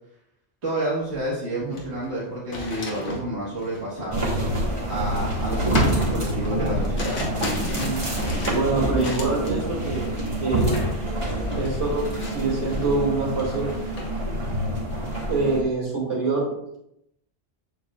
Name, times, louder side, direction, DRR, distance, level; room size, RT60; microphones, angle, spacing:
voice 1, 0.6-4.3 4.9-7.2, right 1 dB, 65° right, -6 dB, 1.8 m, -29 dB
sound 1, 1.1-1.2 1.6-5.2 5.7-9.6 10.0-10.3 10.7-11.0 11.2-12.9 13.3-14.1, left 2 dB, 85° left, 1.5 m, -34 dB
sound 2, 4.1-15.6, right 1 dB, 25° right, 1.6 m, -26 dB
voice 2, 8.5-10.1 10.4-10.8 11.5-13.7 15.3-16.8, right 3 dB, 90° right, -4 dB, 2.8 m, -25 dB
7.7 x 7.3 x 2.4 m, 0.80 s
omnidirectional pair, 1.2 m